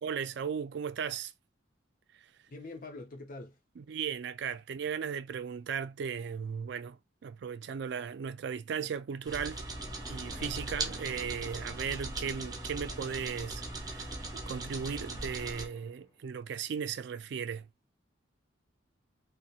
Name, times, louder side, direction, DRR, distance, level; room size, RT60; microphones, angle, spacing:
voice 1, 0.0-1.3 2.1-2.3 3.8-9.6 10.1-17.7, right 7 dB, 60° right, 0.3 m, -37 dB
voice 2, 2.5-3.6 10.3-10.8, left 2 dB, 45° left, 0.7 m, -46 dB
sound 1, 9.2-15.7, right 2 dB, 20° right, 0.7 m, -39 dB
sound 2, 9.4-16.3, left 3 dB, 20° left, 0.3 m, -53 dB
2.8 x 2.1 x 2.3 m
head